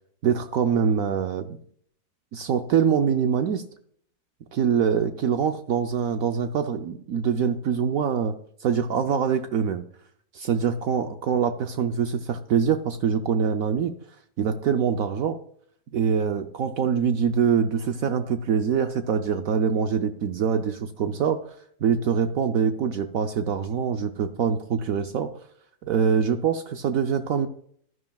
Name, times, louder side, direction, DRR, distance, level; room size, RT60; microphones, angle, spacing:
voice 1, 0.2-1.6 2.3-3.6 4.5-9.8 10.3-13.9 14.4-15.4 15.9-21.4 21.8-25.3 25.8-27.5, right 7 dB, 70° right, 7 dB, 1.0 m, -24 dB
12.5 x 11.0 x 2.3 m, 0.62 s
omnidirectional pair, 1.7 m